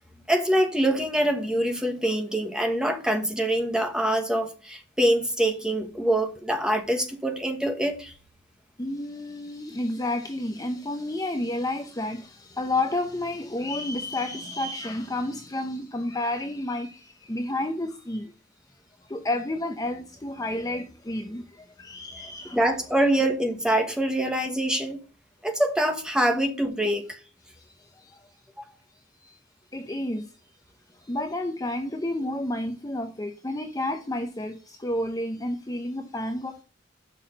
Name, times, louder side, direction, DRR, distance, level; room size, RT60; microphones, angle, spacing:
voice 1, 0.3-8.1 22.5-25.0 25.4-27.2, right 1 dB, 5° right, 1.3 m, -24 dB
voice 2, 8.8-18.3 19.0-22.6 27.6-28.3 29.2-29.4 29.7-30.3 30.9-36.6, left 1 dB, 20° left, 0.7 m, -31 dB
6.3 x 5.8 x 6.4 m
head